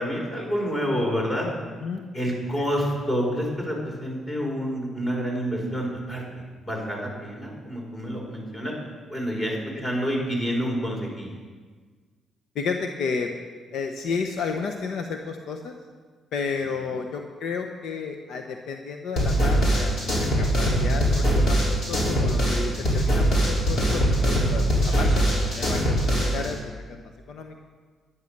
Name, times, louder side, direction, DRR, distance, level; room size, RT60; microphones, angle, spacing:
voice 1, 0.0-1.5 2.1-6.2 6.6-8.7 9.1-11.4, equal, 25° left, -1 dB, 5.1 m, -28 dB
voice 2, 12.5-13.3 13.7-15.8 16.3-25.3 25.5-27.6, left 5 dB, 75° left, 4 dB, 1.0 m, -32 dB
sound 1, 19.2-26.5, equal, 55° left, 4.6 m, -22 dB
11.5 x 11.0 x 6.7 m, 1.5 s
cardioid pair, 90°, 0 cm